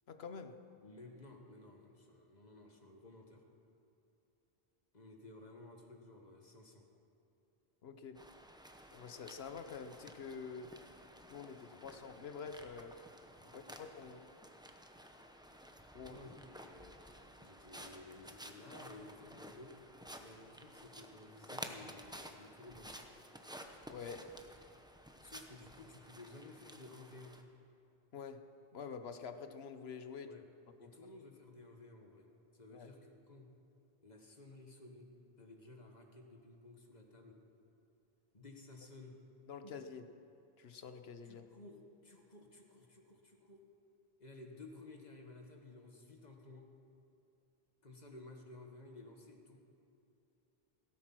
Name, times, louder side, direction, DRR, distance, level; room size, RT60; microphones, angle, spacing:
voice 1, 0.1-0.6 7.8-8.2 8.9-10.8 11.3-13.0 13.5-14.3 15.9-16.2 23.9-24.3 28.1-30.4 30.8-30.9 32.7-32.9 39.5-40.1 40.6-41.5, left 5 dB, 80° left, 9 dB, 1.1 m, -47 dB
voice 2, 0.8-3.4 4.9-6.9 13.4-13.6 16.0-17.0 17.4-19.8 20.2-23.0 25.2-27.4 30.2-30.5 30.8-33.5 34.0-35.1 35.4-37.4 38.3-39.2 39.6-39.8 41.2-43.6 44.2-46.7 47.8-49.6, left 2 dB, 45° left, 2 dB, 1.7 m, -55 dB
sound 1, 8.1-27.4, equal, 5° right, 0.8 m, -53 dB
16.5 x 14.0 x 6.1 m, 2.8 s
omnidirectional pair, 1.0 m